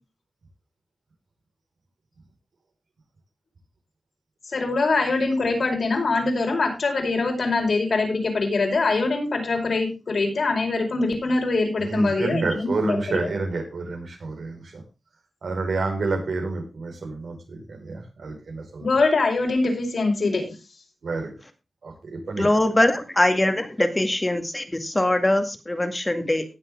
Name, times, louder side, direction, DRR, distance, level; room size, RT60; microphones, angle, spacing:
voice 1, 4.5-13.3 18.8-20.5, left 3 dB, 70° left, 2 dB, 5.0 m, -23 dB
voice 2, 11.8-14.8 15.4-18.9 21.0-21.3 21.8-22.5, right 3 dB, 85° right, 2 dB, 5.1 m, -29 dB
voice 3, 22.4-26.4, left 1 dB, 20° left, 7 dB, 2.1 m, -22 dB
18.0 x 7.5 x 3.7 m, 0.28 s
wide cardioid pair, 115°, 0 cm